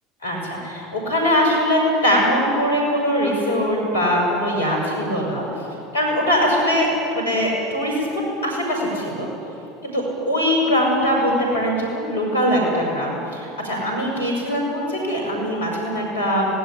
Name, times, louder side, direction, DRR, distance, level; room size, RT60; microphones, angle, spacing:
voice 1, 0.2-5.4 5.9-6.9 7.1-9.3 9.8-16.5, equal, 90° left, -1 dB, 6.0 m, -21 dB
18.5 x 17.5 x 9.9 m, 2.8 s
hypercardioid pair, 75°, 0 cm